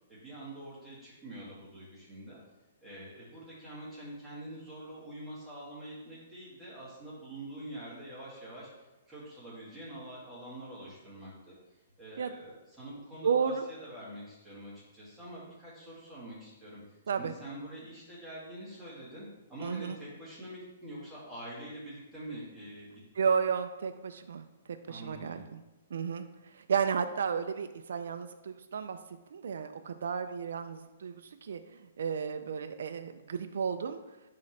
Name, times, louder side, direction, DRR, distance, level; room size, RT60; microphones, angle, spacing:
voice 1, 0.1-2.4 2.8-8.7 9.1-11.5 12.0-16.8 17.2-23.0 24.8-25.5, right 1 dB, 5° right, -10 dB, 2.3 m, -45 dB
voice 2, 13.2-13.7 17.1-17.3 19.6-20.0 23.1-24.5 24.9-25.6 25.9-29.0 29.3-34.0, right 6 dB, 75° right, 8 dB, 0.4 m, -33 dB
9.4 x 3.8 x 3.3 m, 1.1 s
hypercardioid pair, 155°, 0 cm